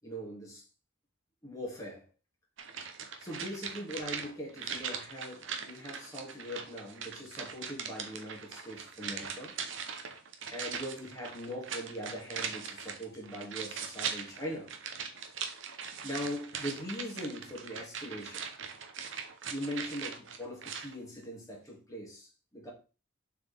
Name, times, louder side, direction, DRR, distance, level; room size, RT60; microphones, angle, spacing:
voice 1, 0.0-0.6 1.4-2.0 3.2-9.6 10.5-14.7 16.0-18.5 19.5-22.7, equal, 15° left, 2.4 m, -41 dB
sound 1, 2.6-20.9 21.2-21.3, right 6 dB, 70° right, 0.9 m, -41 dB
6.6 x 4.6 x 3.5 m
head